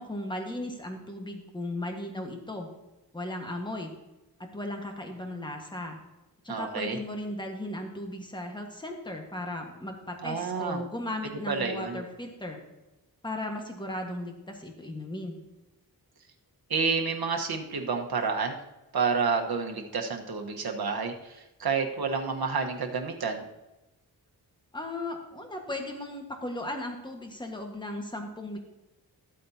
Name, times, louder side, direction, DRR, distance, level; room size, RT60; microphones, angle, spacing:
voice 1, 0.0-2.7 3.1-3.9 4.4-6.0 6.4-12.6 13.2-15.4 24.7-28.6, left 1 dB, 10° left, 2 dB, 1.5 m, -36 dB
voice 2, 6.5-7.0 10.2-10.8 11.5-12.0 16.7-18.5 18.9-23.4, right 5 dB, 70° right, 3 dB, 1.3 m, -29 dB
13.5 x 8.5 x 2.8 m, 1.0 s
wide cardioid pair, 95°, 39 cm